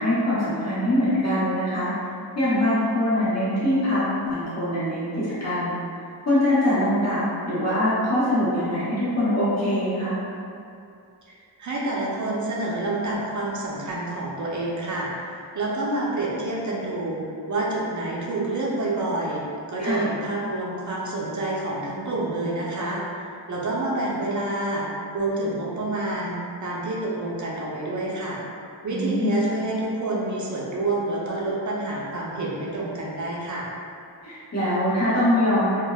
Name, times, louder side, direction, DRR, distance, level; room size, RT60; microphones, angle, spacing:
voice 1, 0.0-1.9 2.3-5.8 6.3-10.2 19.8-20.1 28.9-29.5 34.2-35.8, left 1 dB, 35° left, -12 dB, 0.8 m, -23 dB
voice 2, 11.6-17.2 17.5-19.4 19.7-23.0 23.5-24.9 25.1-28.4 28.8-33.7, right 2 dB, 40° right, -5 dB, 0.5 m, -28 dB
3.0 x 2.1 x 2.2 m, 2.5 s
wide cardioid pair, 65°, 46 cm